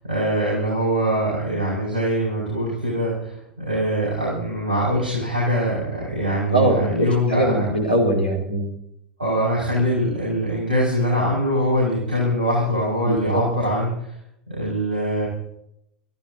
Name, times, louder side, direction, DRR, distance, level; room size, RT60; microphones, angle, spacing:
voice 1, 0.0-7.6 9.2-13.9 14.5-15.3, equal, 80° right, -6 dB, 5.5 m, -23 dB
voice 2, 6.5-8.7 13.0-13.4, right 1 dB, 85° left, 1 dB, 3.4 m, -21 dB
28.0 x 15.0 x 2.8 m, 0.76 s
figure-of-eight pair, 75°, 5 cm